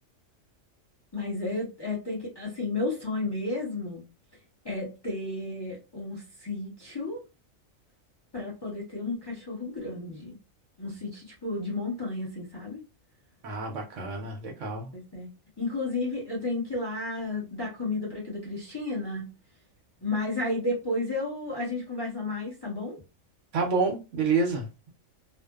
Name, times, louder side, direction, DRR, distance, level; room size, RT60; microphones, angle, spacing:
voice 1, 1.1-4.0 4.6-7.2 8.3-10.4 10.8-12.8 14.9-15.3 15.6-19.3 20.0-23.0, left 2 dB, 25° left, 0.7 m, -32 dB
voice 2, 13.4-14.9 23.5-24.9, right 4 dB, 65° right, 0.9 m, -28 dB
2.6 x 2.0 x 2.2 m
omnidirectional pair, 1.4 m